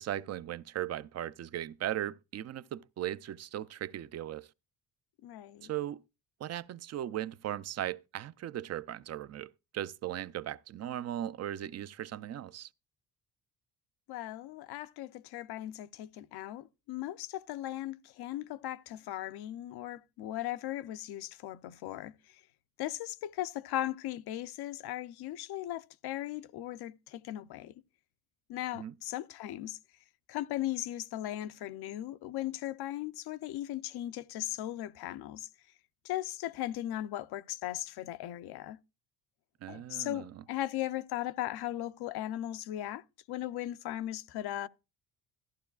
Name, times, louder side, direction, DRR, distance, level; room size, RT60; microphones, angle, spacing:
voice 1, 0.0-4.5 5.6-6.0 6.4-12.7 28.7-28.9 39.6-40.3, right 12 dB, 45° right, 0.4 m, -38 dB
voice 2, 5.2-5.7 14.1-22.4 22.8-27.7 28.5-29.8 30.3-35.5 36.0-38.8 39.7-44.7, left 13 dB, 75° left, 0.6 m, -38 dB
14.0 x 11.0 x 2.3 m
cardioid pair, 110°, 39 cm